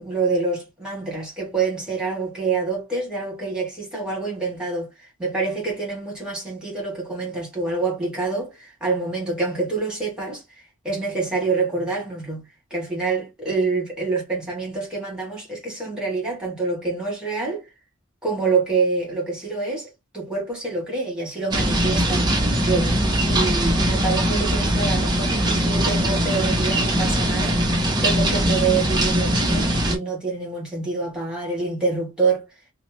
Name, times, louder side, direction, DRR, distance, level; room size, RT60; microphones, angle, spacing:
voice 1, 0.0-10.4 10.8-17.7 18.2-22.3 22.6-23.0 23.3-32.4, right 4 dB, 5° right, 1.3 m, -26 dB
sound 1, 21.5-30.0, right 1 dB, 20° right, 0.6 m, -21 dB
2.8 x 2.0 x 3.1 m
head